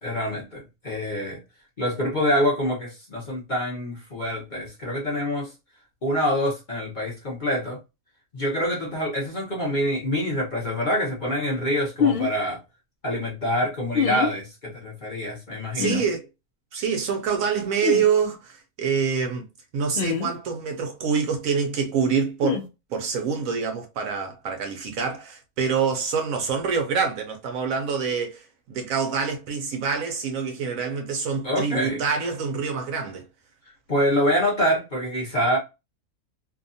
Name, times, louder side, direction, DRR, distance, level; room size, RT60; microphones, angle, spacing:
voice 1, 0.0-1.4 1.8-5.5 6.0-7.8 8.3-12.6 13.0-16.0 31.4-32.0 33.9-35.6, equal, 40° left, 0.8 m, -26 dB
sound 1, 12.0-12.3 13.9-14.3 15.8-16.0 17.8-18.0 19.9-20.3 22.4-22.6, left 7 dB, 90° left, 0.5 m, -24 dB
voice 2, 15.7-16.3 16.7-19.4 19.7-33.2, right 6 dB, 70° right, 0.9 m, -26 dB
2.7 x 2.3 x 2.5 m
omnidirectional pair, 1.6 m